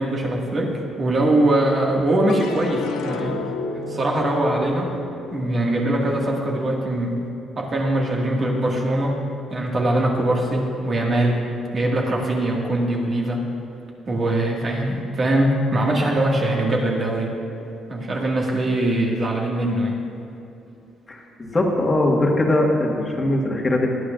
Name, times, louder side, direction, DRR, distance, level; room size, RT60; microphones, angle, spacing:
voice 1, 0.0-3.4 3.9-4.9 5.3-7.2 7.6-9.2 9.5-13.5 14.1-17.4 17.9-20.0, right 1 dB, 35° right, -1 dB, 1.9 m, -22 dB
sound 1, 2.3-8.7 9.2-9.9, left 4 dB, 90° left, 0.7 m, -34 dB
voice 2, 21.1-23.9, left 1 dB, 20° left, -1 dB, 1.6 m, -21 dB
18.5 x 12.0 x 2.5 m, 2.8 s
cardioid pair, 140°, 0 cm